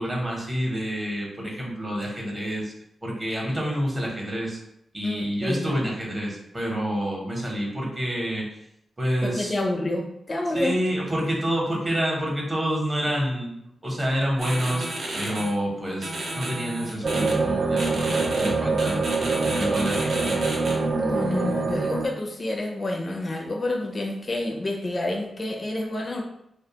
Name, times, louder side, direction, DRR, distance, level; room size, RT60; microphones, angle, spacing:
voice 1, 0.0-2.7 3.0-4.6 4.9-8.5 9.0-9.5 10.5-19.0 19.5-20.4, equal, 25° right, -2 dB, 0.7 m, -28 dB
voice 2, 5.0-5.9 9.2-10.8 21.0-26.2, left 1 dB, 40° left, 0 dB, 0.4 m, -29 dB
sound 1, 14.4-15.5 16.0-17.3 17.8-18.5 18.8-20.7, right 1 dB, 80° right, 0.7 m, -32 dB
sound 2, 17.0-22.1, right 3 dB, 45° right, 0.3 m, -25 dB
2.4 x 2.2 x 2.7 m, 0.78 s
cardioid pair, 80°, 0 cm